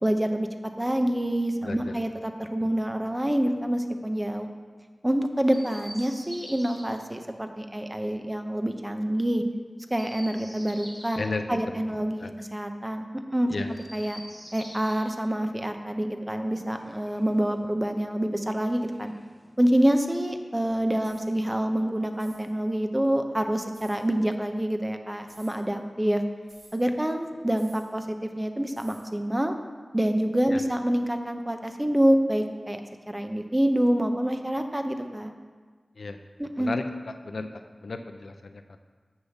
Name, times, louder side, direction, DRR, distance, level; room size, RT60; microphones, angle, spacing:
voice 1, 0.0-0.5 0.8-4.5 5.0-9.4 9.9-11.2 11.5-13.1 13.3-13.5 13.9-14.2 14.5-19.1 19.6-26.2 26.7-29.5 29.9-32.8 33.1-35.3 36.4-36.7, right 1 dB, 15° right, 6 dB, 0.7 m, -26 dB
voice 2, 1.6-2.0 11.2-11.8 12.2-12.3 13.5-13.7 30.5-30.6 36.0-38.8, left 3 dB, 80° left, 7 dB, 0.6 m, -35 dB
Chirp tweet, 5.5-6.8 9.8-11.3 13.7-15.1 16.5-17.6 18.7-19.6, equal, ahead, 1.7 m, -46 dB
sound 1, 21.0-21.3 22.1-22.5 23.7-24.0 25.2-25.6 26.5-26.8 27.6-27.9 28.8-29.1, right 1 dB, 90° right, 1.8 m, -53 dB
6.7 x 5.7 x 7.1 m, 1.5 s
wide cardioid pair, 75°, 0 cm